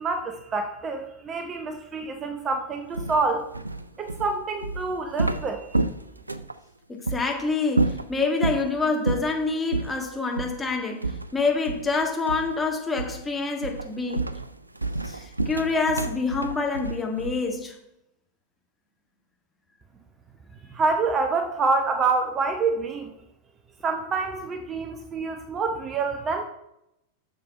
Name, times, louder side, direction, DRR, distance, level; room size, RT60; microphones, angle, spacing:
voice 1, 0.0-3.5 4.0-5.7 20.7-23.1 23.8-26.4, right 4 dB, 25° right, 6 dB, 0.8 m, -27 dB
sound 1, 2.9-6.6 7.1-7.2 7.7-8.7 9.1-9.4 9.7-10.0 10.4-10.6 11.0-12.0 12.3-12.6 13.0-13.3 13.6-17.6, right 3 dB, 85° right, 0.4 m, -29 dB
voice 2, 6.9-11.0 11.3-14.2 15.0-17.8, left 4 dB, 10° left, 1 dB, 1.7 m, -26 dB
9.4 x 6.8 x 4.5 m, 0.81 s
figure-of-eight pair, 90°, 0 cm